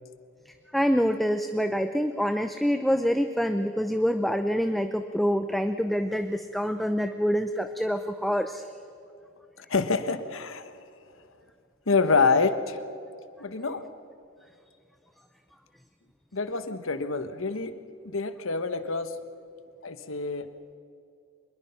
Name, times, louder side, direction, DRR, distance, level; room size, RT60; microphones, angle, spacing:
voice 1, 0.5-8.6, equal, ahead, 7 dB, 0.6 m, -26 dB
voice 2, 9.7-10.7 11.9-12.8 13.4-13.8 16.3-17.7 18.0-19.1 19.8-20.5, left 4 dB, 80° left, 10 dB, 1.2 m, -26 dB
24.5 x 21.5 x 5.7 m, 2.5 s
head